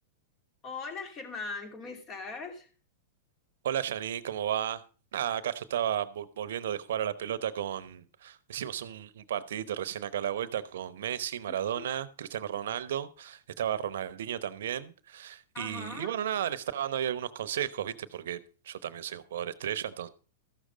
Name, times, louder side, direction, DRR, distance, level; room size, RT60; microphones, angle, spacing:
voice 1, 0.6-2.7 11.7-11.9 15.5-16.1, left 4 dB, 30° left, 6 dB, 2.6 m, -40 dB
voice 2, 3.6-4.8 5.1-18.4 18.6-20.1, right 10 dB, 75° right, 17 dB, 0.9 m, -33 dB
13.5 x 6.6 x 5.1 m, 0.37 s
hypercardioid pair, 120°, 0 cm